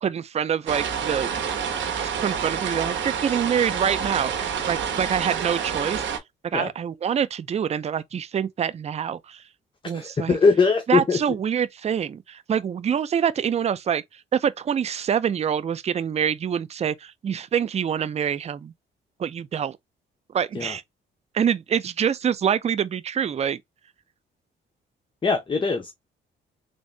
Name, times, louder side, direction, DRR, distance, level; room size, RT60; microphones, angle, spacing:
voice 1, 0.0-1.3 2.0-6.0 6.5-9.4 9.9-10.4 10.9-14.0 14.3-18.7 19.2-19.8 20.3-20.8 21.3-23.6, right 8 dB, 35° right, 0.4 m, -25 dB
sound 1, 0.7-6.2, right 7 dB, 70° right, 1.1 m, -28 dB
voice 2, 9.9-11.2 20.5-20.8 25.2-25.9, left 4 dB, 25° left, 0.7 m, -21 dB
3.6 x 2.6 x 3.2 m
cardioid pair, 90°, 20 cm